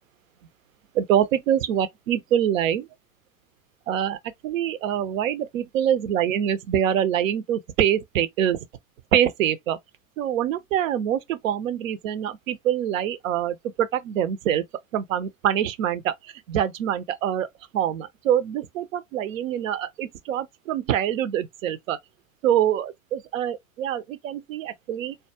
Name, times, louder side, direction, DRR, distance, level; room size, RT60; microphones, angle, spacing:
voice 1, 0.9-2.9 3.9-4.2 4.4-8.6 9.1-9.8 10.2-14.6 14.9-17.5 17.7-22.0 22.4-25.2, right 10 dB, 70° right, 0.6 m, -25 dB
2.2 x 2.0 x 2.8 m
hypercardioid pair, 95°, 42 cm